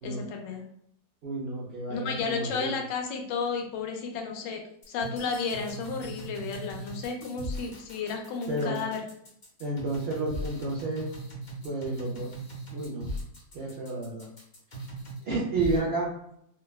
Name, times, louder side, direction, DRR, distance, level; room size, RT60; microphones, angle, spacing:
voice 1, 0.0-0.6 1.9-9.0, left 5 dB, 85° left, 3 dB, 1.3 m, -33 dB
voice 2, 1.2-2.8 8.5-8.8 9.6-11.0 11.6-12.3 12.7-13.1 13.5-14.3 15.2-16.1, right 2 dB, 70° right, -5 dB, 0.5 m, -31 dB
sound 1, 4.8-15.2 15.6-15.8, right 1 dB, 45° left, 0.6 m, -39 dB
3.8 x 2.1 x 2.2 m, 0.72 s
omnidirectional pair, 1.9 m